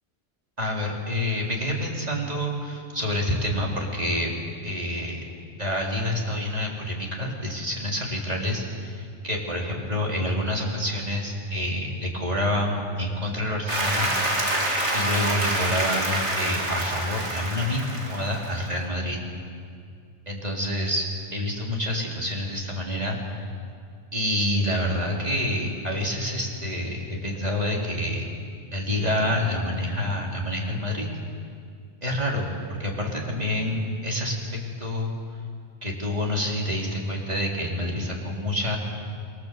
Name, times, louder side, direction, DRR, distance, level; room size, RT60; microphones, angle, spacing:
voice 1, 0.6-4.3 4.6-5.2 5.6-14.1 14.9-19.2 20.3-23.2 24.1-28.2 28.7-31.1 32.0-34.4 34.8-35.1 35.8-38.8, left 1 dB, 30° right, -2 dB, 4.5 m, -27 dB
Applause, 13.7-18.7, right 1 dB, 70° right, 3.9 m, -27 dB
27.0 x 24.0 x 7.9 m, 2.3 s
omnidirectional pair, 1.2 m